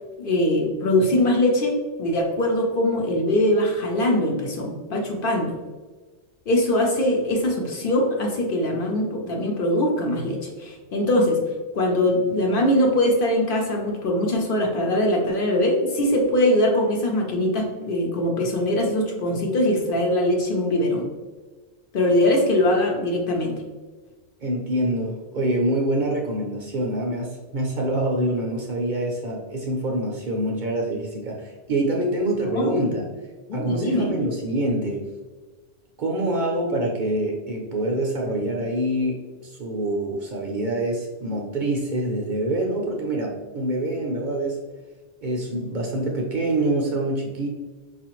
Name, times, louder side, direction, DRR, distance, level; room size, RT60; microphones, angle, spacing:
voice 1, 0.2-5.6 6.5-11.4 11.7-21.1 21.9-23.6 32.4-32.9 33.5-34.1, left 1 dB, 55° left, 0 dB, 0.8 m, -22 dB
voice 2, 24.4-33.1 33.5-35.0 36.0-44.6 45.2-47.5, right 1 dB, 55° right, 0 dB, 0.7 m, -25 dB
4.8 x 2.4 x 3.0 m, 1.3 s
omnidirectional pair, 1.1 m